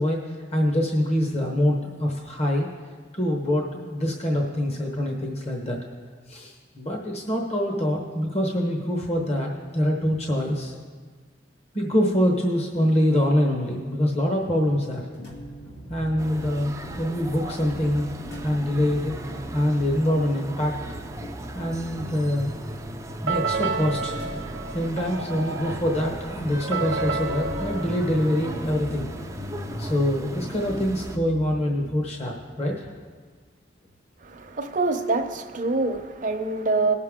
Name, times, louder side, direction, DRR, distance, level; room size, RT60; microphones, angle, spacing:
voice 1, 0.0-2.7 3.1-5.8 6.3-10.7 11.7-15.0 15.9-18.1 18.4-19.1 19.5-20.8 21.5-22.5 23.2-24.2 24.7-29.1 29.8-32.9, left 1 dB, 35° left, 1 dB, 1.1 m, -25 dB
sound 1, 15.1-32.0, equal, 75° left, 2.1 m, -39 dB
sound 2, 16.2-31.2, right 1 dB, 15° right, 0.5 m, -38 dB
sound 3, 23.3-29.0, right 4 dB, 80° right, 0.6 m, -31 dB
voice 2, 34.2-36.9, right 3 dB, 45° right, 5 dB, 0.8 m, -25 dB
19.0 x 6.6 x 3.7 m, 1.5 s
head